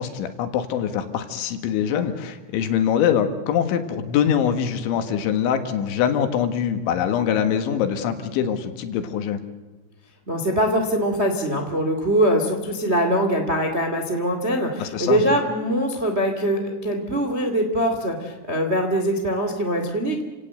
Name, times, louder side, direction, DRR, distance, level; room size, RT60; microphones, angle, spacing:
voice 1, 0.0-9.4 14.8-15.2, left 8 dB, 75° left, 8 dB, 3.9 m, -23 dB
voice 2, 10.3-20.2, equal, 30° right, 4 dB, 1.2 m, -22 dB
30.0 x 18.0 x 7.9 m, 1.2 s
omnidirectional pair, 5.6 m